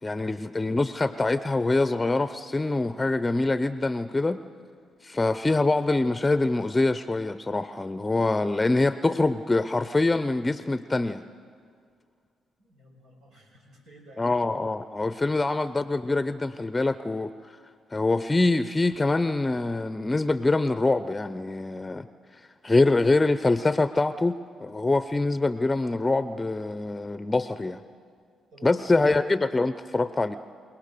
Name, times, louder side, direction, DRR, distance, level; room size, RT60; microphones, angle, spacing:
voice 1, 0.0-4.4 5.0-11.2 14.2-17.5 17.9-22.1 22.3-27.8 28.6-30.4, left 2 dB, 20° left, 13 dB, 0.6 m, -25 dB
voice 2, 12.6-14.4 15.1-15.3 28.5-29.1, right 1 dB, 85° right, 0 dB, 5.3 m, -50 dB
28.0 x 18.0 x 6.8 m, 2.2 s
supercardioid pair, 65°, 0 cm